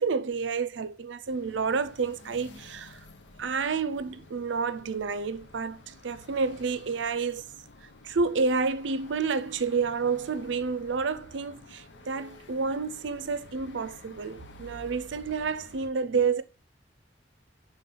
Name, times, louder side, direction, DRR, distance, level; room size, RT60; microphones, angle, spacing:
voice 1, 0.0-3.0 3.4-7.4 8.0-16.4, right 5 dB, 85° right, 0.5 m, -29 dB
sound 1, 1.2-15.9, left 2 dB, 75° left, 0.8 m, -51 dB
5.7 x 3.6 x 5.4 m
head